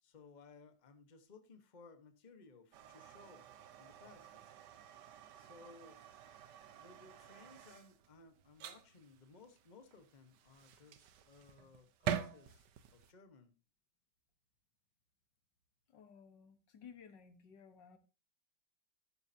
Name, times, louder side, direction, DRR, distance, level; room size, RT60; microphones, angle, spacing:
voice 1, 0.0-3.5 3.8-4.5 5.4-6.1 6.7-13.5, left 4 dB, 30° left, 8 dB, 1.2 m, -60 dB
sound 1, 2.7-13.1, right 9 dB, 75° right, 1.5 m, -47 dB
voice 2, 15.9-18.0, left 7 dB, 80° left, 9 dB, 1.9 m, -57 dB
13.0 x 9.6 x 2.8 m, 0.31 s
omnidirectional pair, 1.9 m